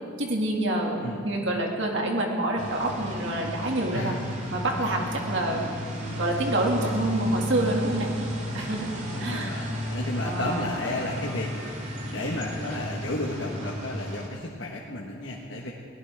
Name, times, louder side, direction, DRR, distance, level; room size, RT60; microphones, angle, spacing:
voice 1, 0.2-4.2 4.5-5.8 6.2-8.1 8.5-9.7 10.2-10.7, right 1 dB, 60° right, 0 dB, 2.3 m, -27 dB
sound 1, 2.6-14.3, equal, 35° right, 2.4 m, -34 dB
voice 2, 9.1-11.7 12.0-15.7, left 1 dB, 60° left, -3 dB, 1.4 m, -33 dB
22.5 x 17.5 x 3.6 m, 2.3 s
head